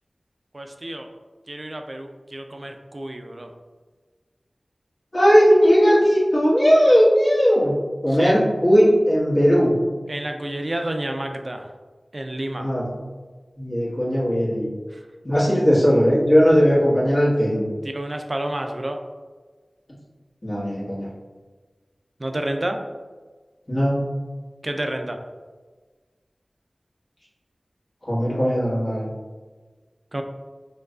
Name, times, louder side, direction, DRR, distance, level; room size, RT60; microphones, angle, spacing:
voice 1, 0.5-1.1 1.5-3.5 8.1-8.4 10.1-11.7 12.1-12.7 14.9-15.0 17.8-19.0 22.2-22.8 24.6-25.2 30.1-30.2, right 1 dB, 45° right, 5 dB, 0.4 m, -30 dB
voice 2, 5.1-7.8 8.0-9.7 12.6-12.8 13.6-14.7 15.2-17.7 20.4-21.1 23.7-24.0 28.0-29.1, equal, 40° left, -9 dB, 1.5 m, -18 dB
4.6 x 2.2 x 2.4 m, 1.4 s
wide cardioid pair, 45°, 0 cm